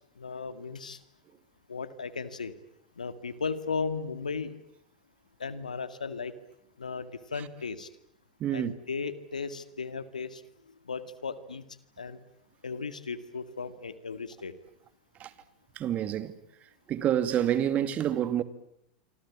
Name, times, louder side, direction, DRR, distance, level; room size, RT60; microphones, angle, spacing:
voice 1, 0.2-1.0 1.7-2.5 3.0-4.6 5.4-6.3 6.8-7.9 8.5-10.4 10.9-11.6 12.0-12.2 12.6-14.5, left 5 dB, 90° left, 2.1 m, -36 dB
voice 2, 8.4-8.7 15.2-15.3 15.8-16.4 16.9-18.4, right 10 dB, 35° right, 2.2 m, -28 dB
27.5 x 25.0 x 8.6 m
hypercardioid pair, 95°, 4 cm